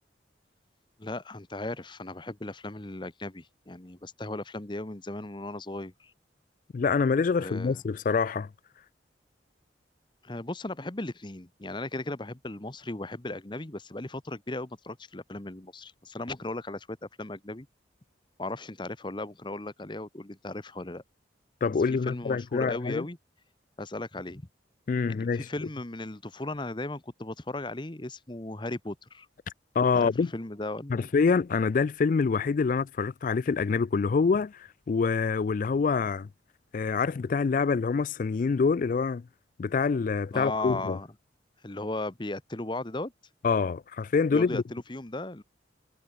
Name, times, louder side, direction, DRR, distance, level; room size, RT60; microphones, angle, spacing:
voice 1, 1.0-6.1 7.4-7.8 10.2-17.7 18.4-21.0 21.9-23.2 23.8-24.5 25.1-29.3 29.9-31.1 40.3-41.1 41.6-43.1 44.3-45.4, left 2 dB, 25° left, 1.1 m, -36 dB
voice 2, 6.7-8.5 21.6-23.0 24.9-25.5 29.8-30.3 30.9-34.6 34.9-36.3 36.7-39.2 39.6-41.0 43.4-44.6, left 5 dB, 45° left, 0.3 m, -26 dB
head